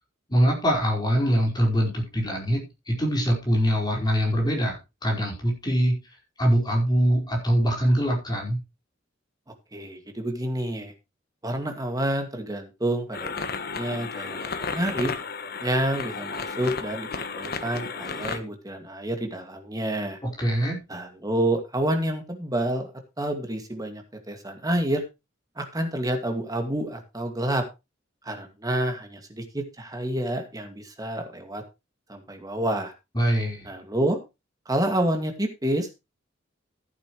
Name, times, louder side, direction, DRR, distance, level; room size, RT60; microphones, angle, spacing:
voice 1, 0.3-8.6 20.2-20.8 33.1-33.7, equal, 20° left, -1 dB, 4.8 m, -23 dB
voice 2, 9.7-10.9 11.4-15.1 15.6-20.2 20.9-22.9 23.2-25.0 25.6-27.6 28.2-31.6 32.1-32.9 33.7-34.2 34.7-35.9, right 1 dB, 20° right, 4 dB, 2.2 m, -28 dB
sound 1, 13.1-18.4, left 4 dB, 50° left, 1.2 m, -33 dB
15.0 x 8.9 x 3.2 m, 0.26 s
head